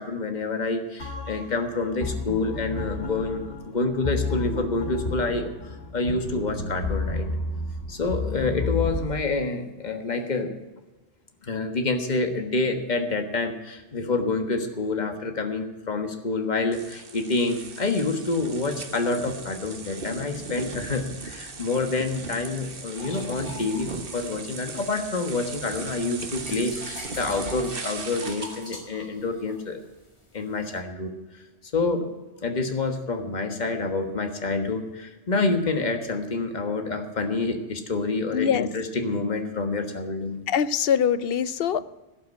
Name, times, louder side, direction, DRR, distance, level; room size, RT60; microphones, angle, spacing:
voice 1, 0.0-7.3 7.9-10.5 11.4-29.8 30.3-31.4 31.7-32.1 32.4-40.3, left 3 dB, 40° left, 6 dB, 1.5 m, -27 dB
sound 1, 1.0-9.1, left 3 dB, 85° left, 2.7 m, -31 dB
sound 2, 16.7-28.7, right 4 dB, 55° right, 1.4 m, -38 dB
sound 3, 23.0-25.1 25.5-30.8, left 1 dB, 25° left, 1.9 m, -43 dB
voice 2, 38.3-38.7 40.5-41.8, left 8 dB, 65° left, 16 dB, 0.8 m, -23 dB
16.5 x 5.8 x 9.5 m, 1.1 s
omnidirectional pair, 1.1 m